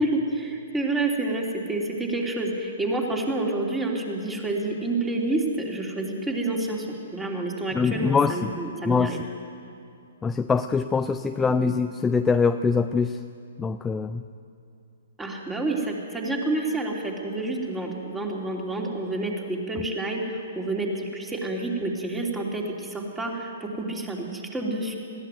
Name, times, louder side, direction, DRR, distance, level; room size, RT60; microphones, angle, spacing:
voice 1, 0.0-6.9 7.1-9.2 11.4-11.7 15.2-24.9, right 2 dB, 10° right, 0 dB, 3.2 m, -28 dB
voice 2, 7.7-8.5 8.8-9.2 10.2-13.2 13.6-14.2, left 5 dB, 10° left, 9 dB, 0.5 m, -23 dB
20.5 x 15.5 x 9.2 m, 2.6 s
figure-of-eight pair, 120°, 0 cm